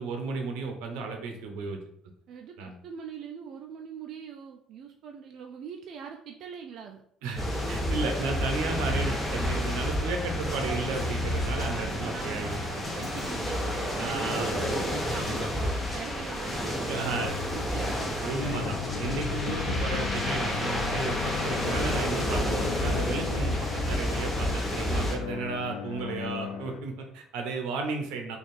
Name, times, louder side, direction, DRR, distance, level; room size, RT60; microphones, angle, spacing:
voice 1, 0.0-1.8 2.6-2.8 7.2-12.6 14.0-14.7 16.9-17.3 18.2-28.4, right 4 dB, 90° right, 4 dB, 0.7 m, -34 dB
voice 2, 2.3-7.0 11.6-18.6, right 7 dB, 60° right, 2 dB, 0.3 m, -42 dB
sound 1, 7.4-25.2, left 1 dB, 20° left, 1.0 m, -30 dB
sound 2, 18.4-26.8, left 8 dB, 70° left, 0.4 m, -36 dB
3.3 x 2.4 x 4.2 m, 0.69 s
cardioid pair, 110°, 0 cm